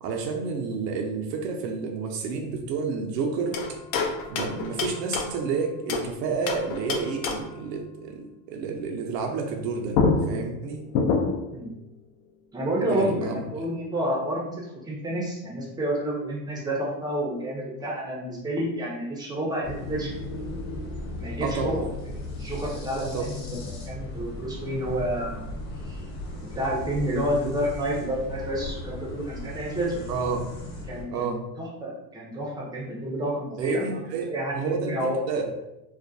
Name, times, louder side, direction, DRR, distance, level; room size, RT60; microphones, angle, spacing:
voice 1, 0.0-3.6 4.3-10.0 10.3-10.8 12.8-13.4 21.4-21.8 23.1-23.3 30.1-30.5 31.1-31.4 33.6-34.9 35.3-35.4, right 5 dB, 75° right, 2 dB, 0.6 m, -30 dB
sound 1, 3.5-6.1 6.5-7.6 9.6-9.7 9.9-11.6, left 4 dB, 60° left, 0.5 m, -27 dB
voice 2, 12.5-20.1 21.2-21.9 22.4-25.5 25.8-26.0 26.4-30.0 30.9-34.0 34.3-35.2, right 1 dB, 10° right, -4 dB, 0.4 m, -29 dB
sound 2, 19.6-31.0, left 1 dB, 40° left, 1.0 m, -36 dB
2.3 x 2.1 x 2.6 m, 0.90 s
supercardioid pair, 115°, 49 cm